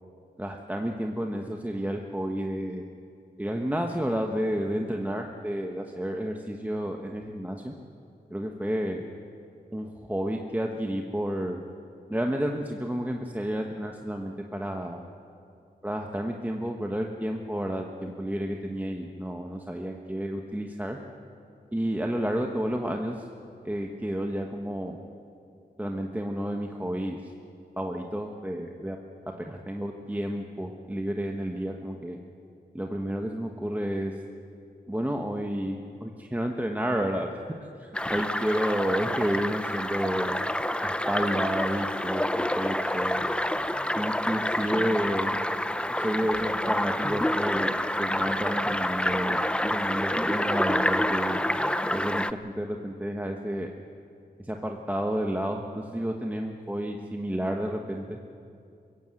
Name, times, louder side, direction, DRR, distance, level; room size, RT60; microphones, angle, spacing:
voice 1, 0.4-2.8 3.4-7.7 8.3-9.0 9.7-11.6 12.1-15.0 15.8-21.0 21.7-23.2 23.6-25.0 25.8-27.3 27.8-29.0 29.4-32.2 32.7-34.1 34.9-37.3 37.8-40.4 40.8-42.2 42.5-43.2 44.0-45.3 45.9-47.7 48.0-51.4 51.9-53.7 54.4-58.2, equal, 10° right, 2 dB, 1.3 m, -31 dB
sound 1, 37.9-52.3, left 1 dB, 5° left, 0.6 m, -28 dB
23.0 x 16.0 x 7.9 m, 2.5 s
cardioid pair, 65°, 17 cm